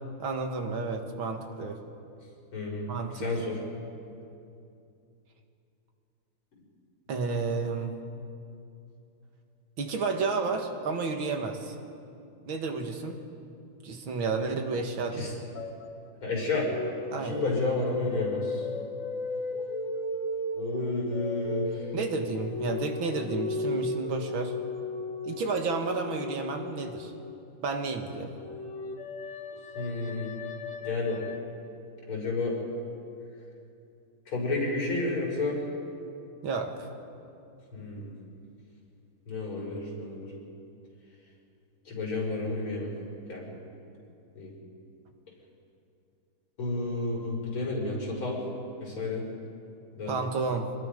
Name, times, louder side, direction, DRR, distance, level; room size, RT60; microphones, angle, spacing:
voice 1, 0.2-1.8 2.9-3.3 7.1-7.9 9.8-11.8 12.5-13.2 13.8-15.3 17.1-17.4 21.9-24.5 25.3-27.1 27.6-28.4 36.4-36.9 50.1-50.7, right 4 dB, 75° right, 4 dB, 2.4 m, -31 dB
voice 2, 2.5-2.9 3.2-3.6 15.1-15.3 16.2-16.7 17.2-18.7 20.5-21.9 29.7-30.3 30.8-31.2 32.1-32.5 34.3-35.6 37.7-38.1 39.3-40.3 41.9-42.9 43.3-43.5 44.3-44.5 46.6-48.4 48.8-49.2 49.9-50.1, left 2 dB, 85° left, -4 dB, 6.5 m, -31 dB
sound 1, 15.5-16.1 16.4-27.5 28.3-31.4, left 3 dB, 45° left, 1.3 m, -36 dB
26.5 x 20.5 x 5.3 m, 2.6 s
omnidirectional pair, 2.3 m